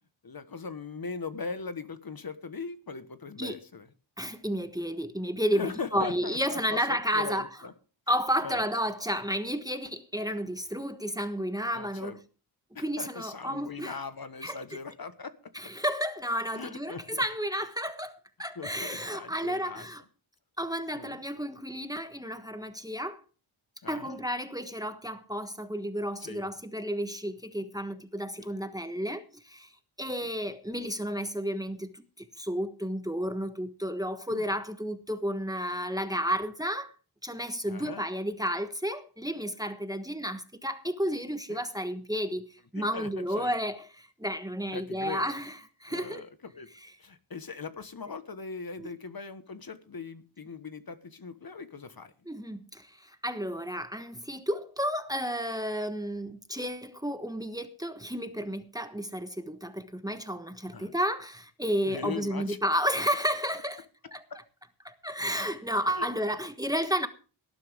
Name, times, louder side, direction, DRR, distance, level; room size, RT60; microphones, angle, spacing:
voice 1, 0.2-3.9 5.5-7.7 8.4-8.6 11.7-12.2 12.7-15.3 16.5-17.2 18.5-19.9 20.9-21.2 23.8-24.2 26.2-26.5 30.2-30.3 34.3-34.5 37.7-38.0 41.5-41.6 42.7-43.5 44.7-45.4 45.9-46.7 47.0-52.1 60.7-60.9 61.9-62.6 64.0-64.4 65.9-66.1, left 5 dB, 45° left, 1.3 m, -40 dB
voice 2, 4.2-7.5 8.1-12.1 12.8-14.0 14.4-14.6 15.5-20.0 20.6-23.2 23.9-29.7 30.0-36.9 37.2-42.4 42.7-46.2 48.8-48.9 52.3-63.8 64.1-64.2 64.8-67.1, equal, 10° right, 1.2 m, -32 dB
18.5 x 11.0 x 3.5 m
wide cardioid pair, 120°, 49 cm